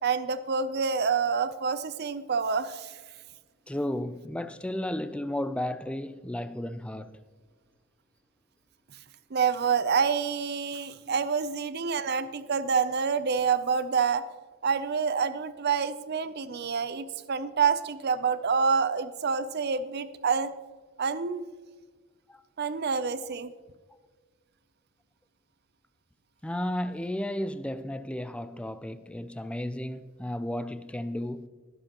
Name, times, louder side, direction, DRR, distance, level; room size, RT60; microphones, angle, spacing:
voice 1, 0.0-3.0 9.3-14.3 14.6-20.5 21.0-21.4 22.6-23.5, right 6 dB, 50° right, 0.5 m, -27 dB
voice 2, 3.7-7.2 11.0-11.1 22.3-22.4 26.4-31.5, left 1 dB, 5° left, 0.3 m, -33 dB
21.5 x 7.5 x 3.0 m
head